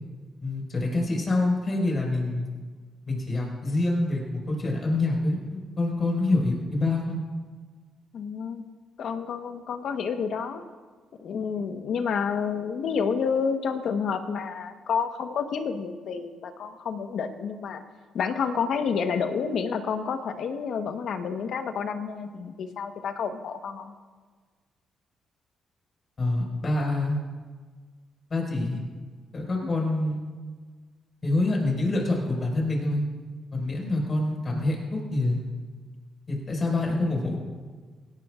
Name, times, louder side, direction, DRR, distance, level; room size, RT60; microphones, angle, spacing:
voice 1, 0.4-2.5 3.1-7.2 26.2-27.2 28.3-28.8 29.3-30.2 31.2-33.0 33.5-35.4 36.3-37.4, left 2 dB, 35° left, -1 dB, 5.2 m, -26 dB
voice 2, 8.1-8.7 9.0-10.6 11.2-17.8 18.1-23.9 29.6-29.7, left 6 dB, 65° left, 7 dB, 1.2 m, -29 dB
18.0 x 17.5 x 2.5 m, 1.5 s
cardioid pair, 90°, 0 cm